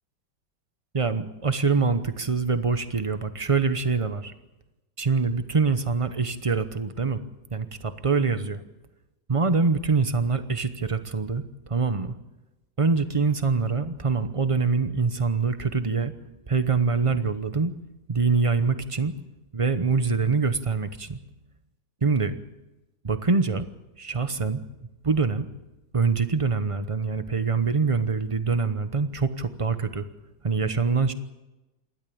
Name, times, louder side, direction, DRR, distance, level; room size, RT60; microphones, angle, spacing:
voice 1, 0.9-4.3 5.0-7.2 7.5-8.6 9.3-11.4 11.7-12.1 12.8-16.1 16.5-17.7 18.1-19.1 19.5-21.2 22.0-22.4 23.0-23.7 24.0-24.6 25.0-25.5 25.9-30.1 30.4-31.1, right 4 dB, 35° right, 10 dB, 0.5 m, -24 dB
27.5 x 12.5 x 8.6 m, 1.0 s
omnidirectional pair, 2.1 m